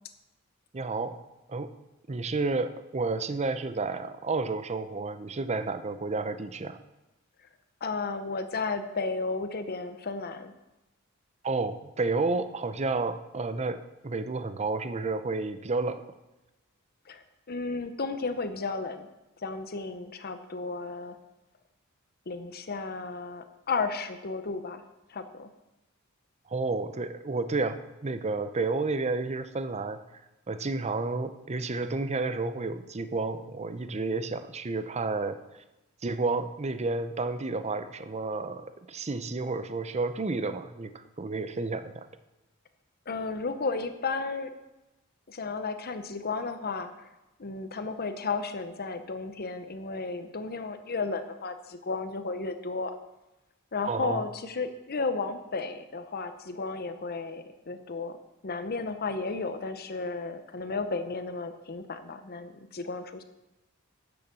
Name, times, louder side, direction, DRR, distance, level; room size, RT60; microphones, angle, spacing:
voice 1, 0.7-1.2 1.5-1.7 2.1-6.8 11.4-16.0 26.5-30.0 30.5-35.4 36.0-42.1 53.8-54.2, right 3 dB, 30° right, 11 dB, 0.6 m, -31 dB
voice 2, 7.8-10.5 17.1-19.1 19.4-21.2 22.3-24.8 25.1-25.5 43.1-44.5 45.3-47.1 47.4-52.9 53.7-58.2 58.4-63.2, left 4 dB, 45° left, 9 dB, 0.8 m, -33 dB
10.0 x 7.0 x 6.8 m, 1.0 s
head